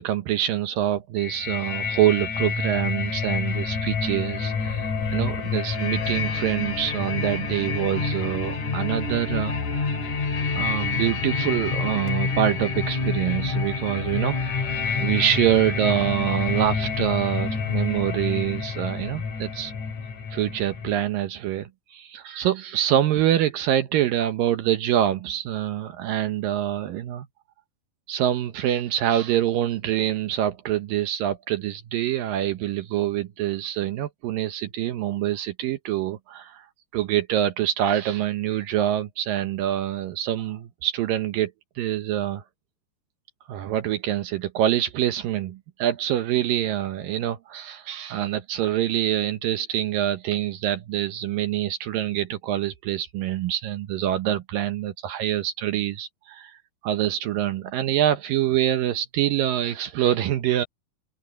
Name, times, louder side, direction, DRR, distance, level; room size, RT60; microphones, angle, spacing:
voice 1, 0.0-10.3 10.5-14.4 15.0-19.7 20.3-27.3 28.1-36.7 36.9-41.5 41.8-42.4 43.5-60.7, right 12 dB, 70° right, 2.4 m, -25 dB
sound 1, 1.2-20.9, left 5 dB, 50° left, 3.8 m, -28 dB
open air
omnidirectional pair, 4.5 m